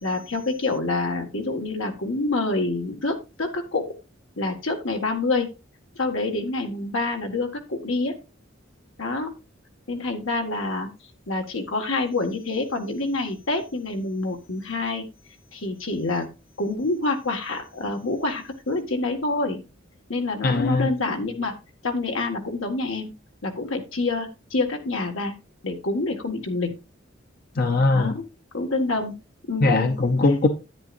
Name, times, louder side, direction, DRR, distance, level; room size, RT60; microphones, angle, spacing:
voice 1, 0.0-3.9 4.4-5.5 6.0-8.2 9.0-9.3 9.9-10.9 11.3-15.1 15.5-16.3 16.6-19.6 20.1-21.5 21.8-23.1 23.4-25.3 25.6-26.7 27.9-28.2 28.5-29.2 29.5-29.9, left 2 dB, 85° left, 1.8 m, -27 dB
voice 2, 20.4-20.9 27.6-28.1 29.6-30.5, left 3 dB, 50° left, 0.7 m, -20 dB
10.5 x 9.4 x 2.6 m
head